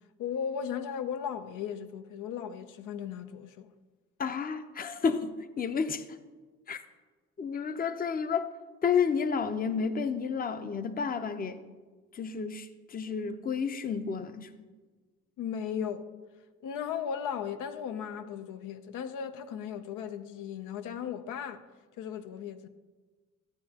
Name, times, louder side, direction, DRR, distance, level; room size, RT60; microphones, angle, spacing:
voice 1, 0.2-3.7 15.4-16.1 16.6-21.6 22.0-22.7, left 8 dB, 85° left, 0.7 m, -36 dB
voice 2, 4.2-6.2 6.7-6.8 7.4-8.5 8.8-11.6 12.1-14.5, left 6 dB, 30° left, 0.6 m, -31 dB
14.0 x 8.6 x 2.8 m
cardioid pair, 90°, 30 cm